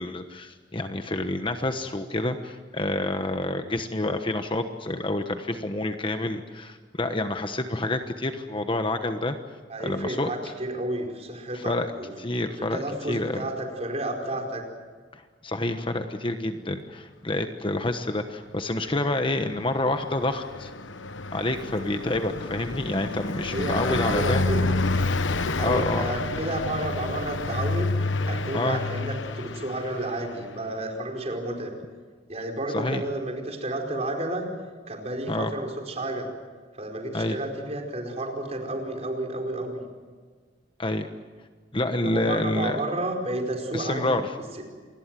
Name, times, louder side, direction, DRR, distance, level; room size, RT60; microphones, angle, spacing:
voice 1, 0.0-9.4 9.8-10.5 11.5-11.9 12.2-12.8 13.1-13.5 15.1-20.7 21.3-24.5 25.6-26.1 28.5-28.8 32.7-33.0 35.3-35.5 37.1-37.4 40.8-41.1 41.7-42.8 43.7-44.3, left 2 dB, 25° left, 7 dB, 1.2 m, -28 dB
voice 2, 9.7-12.1 12.6-14.6 23.4-24.7 25.5-31.7 32.3-34.5 34.9-36.3 36.8-39.8 42.0-44.2, right 1 dB, 35° right, 2 dB, 4.8 m, -31 dB
Car passing by, 19.5-30.5, left 3 dB, 85° left, 1.1 m, -29 dB
28.0 x 21.5 x 7.7 m, 1.5 s
head